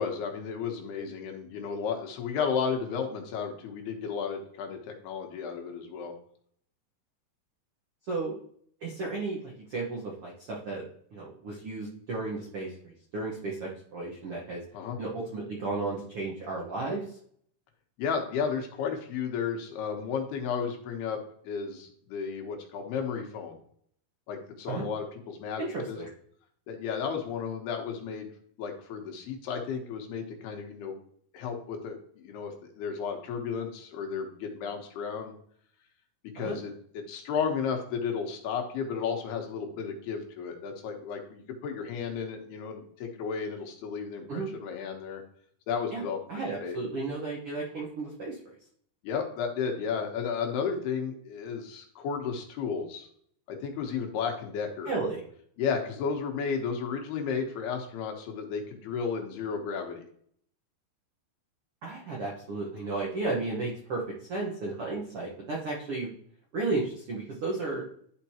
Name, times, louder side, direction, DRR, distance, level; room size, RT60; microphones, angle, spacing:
voice 1, 0.0-6.1 14.7-15.0 18.0-21.2 21.4-23.6 24.3-25.6 25.9-26.0 26.7-28.3 28.6-31.0 31.3-35.3 36.3-45.2 45.7-46.2 46.6-46.8 49.0-53.1 53.5-54.9 55.6-60.1, left 6 dB, 80° left, 3 dB, 3.2 m, -33 dB
voice 2, 8.8-10.8 11.1-14.6 15.0-17.0 24.7-24.8 25.6-26.1 36.4-36.5 44.3-44.5 45.9-46.0 46.3-48.5 54.8-55.2 61.8-64.0 64.3-66.1 66.5-67.8, right 3 dB, 70° right, -3 dB, 1.3 m, -33 dB
11.0 x 5.1 x 2.9 m, 0.62 s
omnidirectional pair, 4.6 m